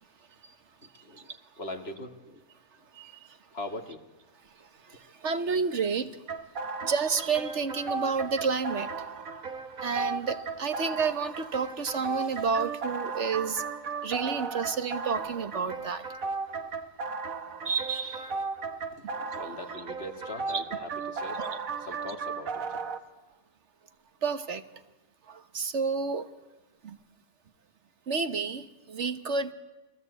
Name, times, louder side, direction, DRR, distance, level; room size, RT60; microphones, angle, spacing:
voice 1, 0.9-2.4 3.5-4.0 18.9-21.4 21.8-22.8, left 1 dB, 50° left, 4 dB, 2.4 m, -41 dB
voice 2, 4.9-6.1 6.8-8.9 9.8-13.6 14.0-16.0 17.6-18.3 20.5-20.6 21.4-21.6 24.2-24.6 25.3-26.3 26.8-27.0 28.1-29.5, right 5 dB, 60° right, 10 dB, 1.4 m, -30 dB
sound 1, 6.3-23.0, right 4 dB, 80° right, 1.8 m, -36 dB
29.5 x 21.0 x 8.2 m, 1.1 s
omnidirectional pair, 1.4 m